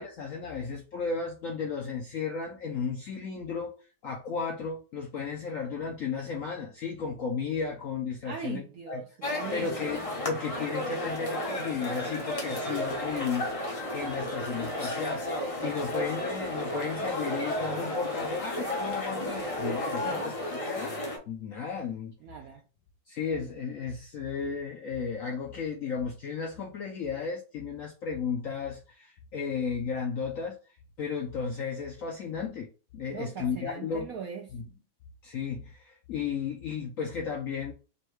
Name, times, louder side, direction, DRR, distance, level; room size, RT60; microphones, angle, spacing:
voice 1, 0.0-3.7 4.0-9.0 9.5-15.2 15.6-21.0 21.3-22.1 23.1-30.6 31.0-32.7 32.9-34.1 34.5-34.6 35.2-37.7, left 6 dB, 70° left, 0.8 m, -34 dB
voice 2, 8.2-9.8 20.0-20.3 22.2-22.6 33.1-34.5, right 7 dB, 80° right, 0.8 m, -40 dB
sound 1, 9.2-21.2, left 1 dB, 40° left, 0.5 m, -33 dB
5.4 x 2.2 x 3.0 m
omnidirectional pair, 2.1 m